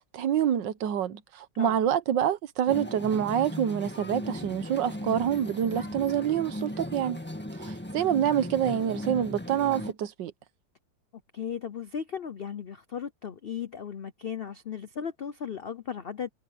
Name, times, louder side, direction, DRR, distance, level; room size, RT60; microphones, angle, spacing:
voice 1, 0.1-7.2 7.5-10.3, right 9 dB, 75° right, 1.6 m, -27 dB
sound 1, 2.7-9.9, left 1 dB, 5° left, 1.6 m, -37 dB
voice 2, 11.3-16.3, left 7 dB, 85° left, 0.5 m, -36 dB
omnidirectional pair, 2.0 m